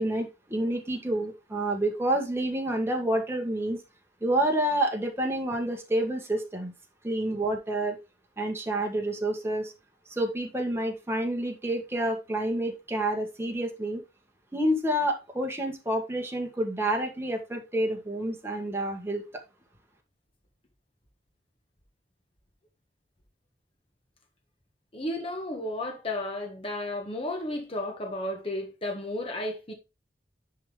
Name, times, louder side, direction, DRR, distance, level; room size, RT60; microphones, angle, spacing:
voice 1, 0.0-3.8 4.2-6.7 7.0-8.0 8.4-9.7 10.1-14.0 14.5-19.2, right 1 dB, 15° right, 1.5 m, -28 dB
voice 2, 24.9-29.7, left 1 dB, 30° left, 1.4 m, -33 dB
10.0 x 3.7 x 3.4 m
head